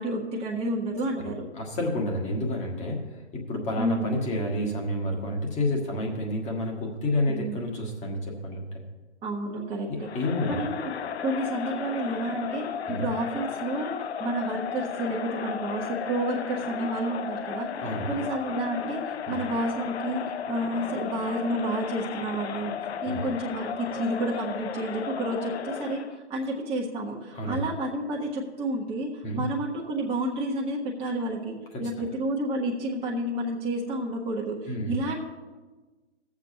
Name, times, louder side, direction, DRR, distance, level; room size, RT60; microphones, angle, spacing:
voice 1, 0.0-1.4 3.8-4.1 7.3-7.6 9.2-10.1 10.5-10.9 11.2-17.7 18.1-20.2 20.5-22.7 23.0-26.0 26.3-35.2, right 1 dB, 15° right, -4 dB, 1.3 m, -30 dB
voice 2, 1.2-8.8 9.9-10.6 12.9-13.0 17.8-18.2 19.3-19.4 23.1-23.2 27.3-27.7 29.2-29.4 31.7-32.1 34.6-35.0, left 1 dB, 20° left, 0 dB, 1.7 m, -30 dB
Crowd, 10.0-26.2, left 8 dB, 65° left, 0.6 m, -34 dB
20.0 x 7.3 x 2.8 m, 1.3 s
figure-of-eight pair, 120°, 35 cm